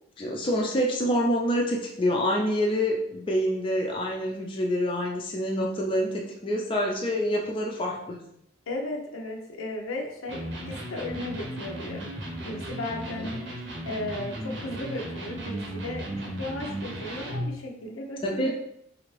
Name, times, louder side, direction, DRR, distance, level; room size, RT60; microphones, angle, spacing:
voice 1, 0.2-8.3 13.2-13.3 18.2-18.5, equal, 25° left, -1 dB, 0.4 m, -27 dB
voice 2, 8.7-12.0 12.4-13.4 13.8-16.1 16.4-18.5, left 1 dB, 90° left, 2 dB, 0.6 m, -35 dB
Electric guitar, 10.3-17.6, right 1 dB, 60° right, 0.7 m, -35 dB
3.3 x 2.5 x 3.2 m, 0.74 s
head